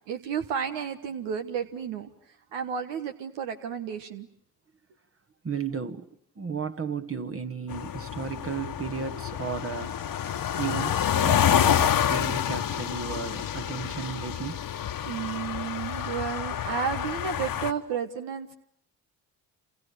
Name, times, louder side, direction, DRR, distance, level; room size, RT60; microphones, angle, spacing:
voice 1, 0.1-4.3 15.0-18.5, right 7 dB, 75° right, 1.4 m, -32 dB
voice 2, 5.4-6.1 6.4-10.0 10.6-14.6, right 6 dB, 30° right, 1.4 m, -34 dB
sound 1, 7.7-17.7, left 9 dB, 50° left, 1.3 m, -28 dB
28.0 x 28.0 x 6.8 m
hypercardioid pair, 55°, 43 cm